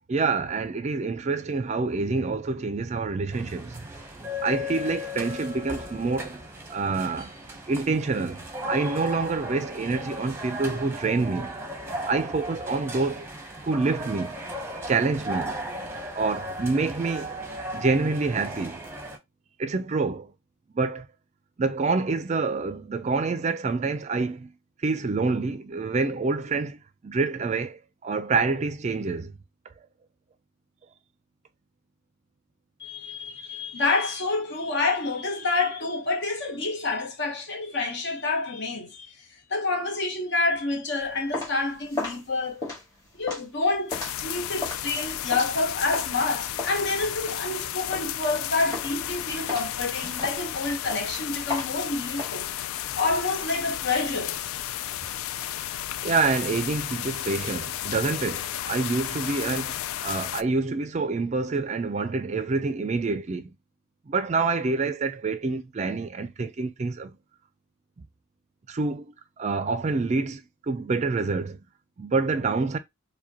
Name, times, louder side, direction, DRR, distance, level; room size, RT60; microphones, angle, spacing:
voice 1, 0.1-3.9 4.4-6.4 6.7-7.3 7.7-11.5 12.1-13.3 13.6-14.4 14.9-15.5 16.1-17.4 17.7-18.8 19.6-20.3 20.7-21.1 21.6-24.5 24.8-29.3 56.0-63.5 64.1-67.2 68.7-71.6 72.0-72.8, right 3 dB, 35° right, 0.4 m, -27 dB
sound 1, 3.3-19.2, equal, 10° right, 0.8 m, -36 dB
voice 2, 32.8-42.7 43.1-43.9 44.2-52.5 53.0-54.4, left 3 dB, 55° left, 1.0 m, -28 dB
sound 2, 41.0-46.2 46.6-48.4 48.7-49.1 49.5-52.3, left 3 dB, 20° left, 1.6 m, -35 dB
sound 3, 43.9-60.4, left 12 dB, 90° left, 0.3 m, -33 dB
4.8 x 2.2 x 2.8 m
head